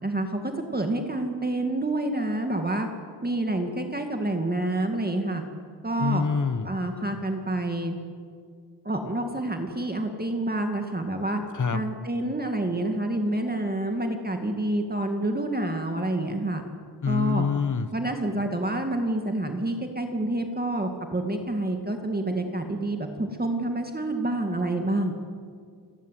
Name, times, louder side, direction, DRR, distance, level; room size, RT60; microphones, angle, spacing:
voice 1, 0.0-2.9 3.2-5.4 5.8-6.2 6.6-8.0 8.8-11.4 11.7-16.6 17.1-17.4 17.9-25.1, right 1 dB, 20° right, 4 dB, 2.2 m, -28 dB
voice 2, 6.0-6.7 11.5-11.8 17.0-17.9, left 5 dB, 45° left, 12 dB, 1.3 m, -26 dB
28.5 x 15.0 x 9.4 m, 2.1 s
wide cardioid pair, 100°, 42 cm